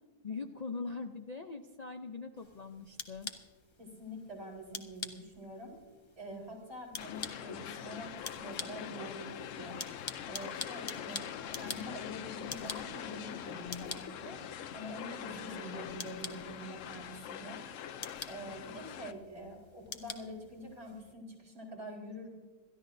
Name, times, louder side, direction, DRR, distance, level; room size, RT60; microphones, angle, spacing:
voice 1, 0.2-3.3, left 4 dB, 85° left, 5 dB, 0.3 m, -41 dB
sound 1, 2.4-21.1, left 3 dB, 30° left, 0.5 m, -47 dB
voice 2, 3.8-5.7 6.2-9.8 10.3-11.3 11.5-14.4 14.7-17.6 18.3-22.3, equal, 45° right, -1 dB, 4.2 m, -45 dB
sound 2, 7.0-19.1, left 9 dB, 65° left, 0.9 m, -43 dB
27.5 x 13.5 x 2.6 m, 1.4 s
omnidirectional pair, 1.7 m